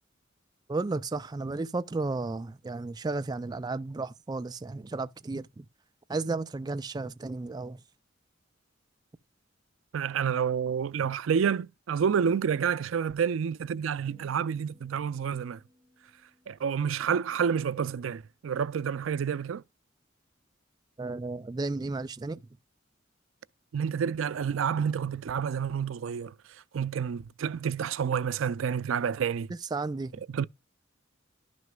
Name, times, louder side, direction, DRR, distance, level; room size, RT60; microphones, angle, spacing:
voice 1, 0.7-5.6 6.1-7.8 21.0-22.4 29.7-30.1, right 3 dB, 20° right, 0.3 m, -33 dB
voice 2, 9.9-15.6 16.5-19.6 23.7-29.5 30.3-30.4, right 7 dB, 90° right, 0.4 m, -29 dB
sound 1, 14.1-18.4, equal, 15° left, 4.8 m, -61 dB
11.5 x 6.2 x 2.3 m
head